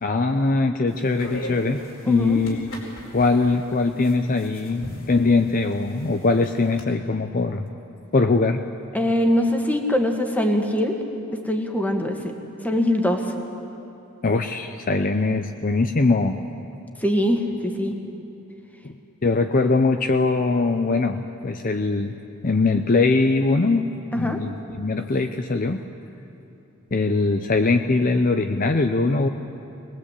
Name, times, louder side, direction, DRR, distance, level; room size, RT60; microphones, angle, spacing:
voice 1, 0.0-1.8 2.1-2.6 3.1-7.6 8.1-8.6 14.2-16.4 18.8-18.9 19.2-22.2 22.4-23.9 24.2-24.5 24.8-25.8 26.9-29.3, left 3 dB, 40° left, 7 dB, 0.7 m, -21 dB
sound 1, 0.9-6.8, left 1 dB, 70° left, 4.6 m, -40 dB
voice 2, 2.1-2.4 8.9-11.0 11.3-12.3 12.6-13.3 17.0-18.0 24.1-24.4, left 1 dB, 10° left, 3 dB, 1.8 m, -22 dB
22.0 x 20.0 x 8.3 m, 2.8 s
head